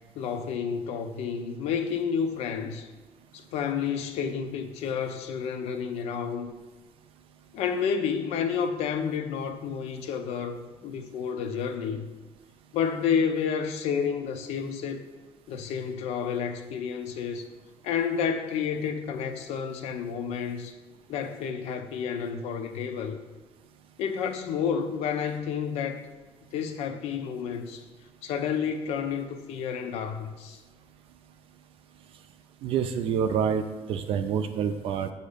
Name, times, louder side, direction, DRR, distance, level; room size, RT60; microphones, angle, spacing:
voice 1, 0.1-2.9 3.3-6.5 7.5-12.1 12.7-15.0 15.5-17.5 17.8-20.8 21.1-23.2 24.0-26.1 26.5-27.8 28.2-30.6, left 7 dB, 75° left, 7 dB, 0.6 m, -30 dB
voice 2, 32.6-35.1, right 7 dB, 55° right, 8 dB, 0.4 m, -27 dB
7.7 x 2.7 x 4.9 m, 1.3 s
cardioid pair, 165°, 11 cm